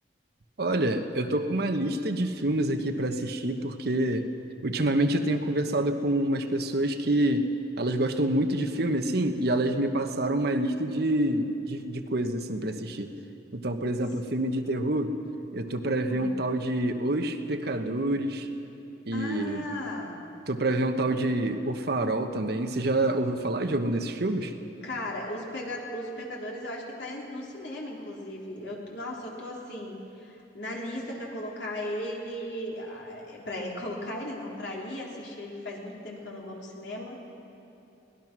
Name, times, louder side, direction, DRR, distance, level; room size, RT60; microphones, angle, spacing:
voice 1, 0.6-4.3 4.6-7.5 7.8-13.1 13.5-15.1 15.5-18.5 19.1-19.6 20.5-24.5, right 1 dB, 60° right, 7 dB, 1.2 m, -27 dB
voice 2, 19.1-20.2 24.8-37.2, left 1 dB, 65° left, -2 dB, 3.7 m, -36 dB
23.5 x 18.0 x 6.1 m, 3.0 s
head